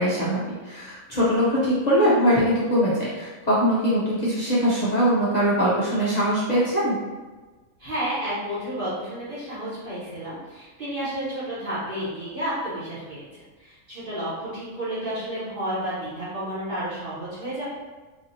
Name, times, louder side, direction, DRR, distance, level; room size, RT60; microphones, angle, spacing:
voice 1, 0.0-7.0, equal, 45° left, -8 dB, 0.5 m, -22 dB
voice 2, 7.8-17.7, right 1 dB, 40° right, -10 dB, 1.1 m, -31 dB
3.3 x 2.8 x 2.6 m, 1.3 s
omnidirectional pair, 1.5 m